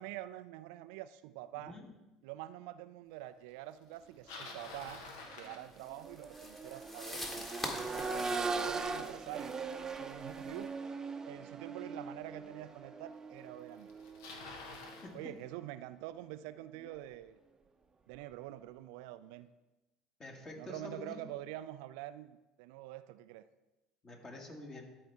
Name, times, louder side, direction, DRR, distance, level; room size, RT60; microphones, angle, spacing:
voice 1, 0.0-1.8 2.2-5.0 5.4-7.5 7.9-9.5 10.0-10.8 11.3-14.0 15.1-17.4 18.1-19.5 20.6-23.5, right 14 dB, 65° right, 13 dB, 0.3 m, -46 dB
Bicycle, 3.9-6.3 11.3-11.4 12.3-12.4 13.4-13.5 13.7-15.1, left 3 dB, 70° left, 1.2 m, -48 dB
Accelerating revving vroom, 5.2-15.1 16.8-16.9, right 4 dB, 25° right, 0.7 m, -41 dB
sound 1, 5.7-10.6, left 1 dB, 15° left, 1.6 m, -45 dB
voice 2, 15.0-15.4 20.2-21.2 24.0-24.8, left 2 dB, 30° left, 1 dB, 2.1 m, -47 dB
12.5 x 4.4 x 3.6 m, 1.0 s
hypercardioid pair, 70°, 2 cm